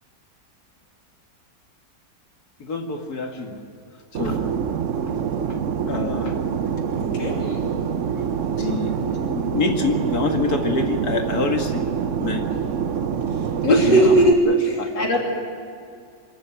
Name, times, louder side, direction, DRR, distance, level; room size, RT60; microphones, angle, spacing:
voice 1, 2.6-3.6 4.1-4.5 5.5-5.6 5.9-6.5 8.1-8.2 8.5-9.0 9.3-11.9 12.2-12.4 13.7-14.2 14.5-15.2, left 3 dB, 60° left, 3 dB, 2.6 m, -26 dB
Fixed-wing aircraft airplane, 4.1-14.3, right 7 dB, 50° right, 1.0 m, -25 dB
voice 2, 6.8-7.6 13.3-15.2, right 1 dB, 75° left, -1 dB, 3.9 m, -19 dB
26.0 x 13.5 x 9.3 m, 2.5 s
omnidirectional pair, 1.9 m